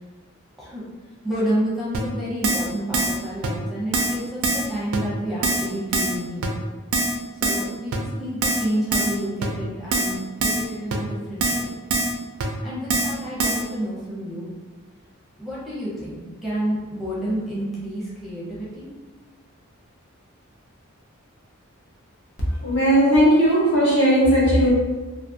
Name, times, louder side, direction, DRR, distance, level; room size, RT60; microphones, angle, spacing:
voice 1, 1.2-6.5 7.3-11.7 12.6-14.5 15.4-18.9, right 1 dB, ahead, -8 dB, 0.6 m, -29 dB
Keyboard (musical), 1.9-2.0 2.4-2.7 2.9-3.2 3.4-3.5 3.9-4.2 4.4-4.7 4.9-5.0 5.4-5.7 5.9-6.2 6.4-6.5 6.9-7.2 7.4-7.6 7.9-8.0 8.4-8.6 8.9-9.2 9.4-9.5 9.9-10.1 10.4-10.6 10.9-11.0 11.4-11.6 11.9-12.1 12.4-12.5 12.9-13.1 13.4-13.6, right 3 dB, 85° right, 0.4 m, -23 dB
voice 2, 22.6-24.7, equal, 55° left, -5 dB, 0.8 m, -17 dB
2.4 x 2.4 x 2.6 m, 1.3 s
head